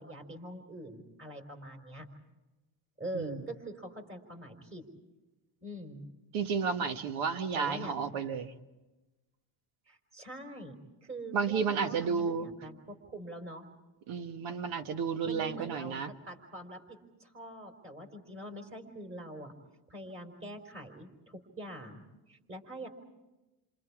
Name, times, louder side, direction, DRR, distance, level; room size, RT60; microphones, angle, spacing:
voice 1, 0.0-2.1 3.0-4.8 5.6-6.0 7.5-7.9 9.9-13.7 15.2-16.0 16.3-19.5 19.9-22.0 22.3-22.9, right 1 dB, 25° right, 5 dB, 4.8 m, -44 dB
voice 2, 6.3-8.5 11.3-12.5 14.1-16.1, right 6 dB, 80° right, 9 dB, 1.6 m, -32 dB
29.0 x 27.0 x 4.9 m, 1.1 s
cardioid pair, 105°, 47 cm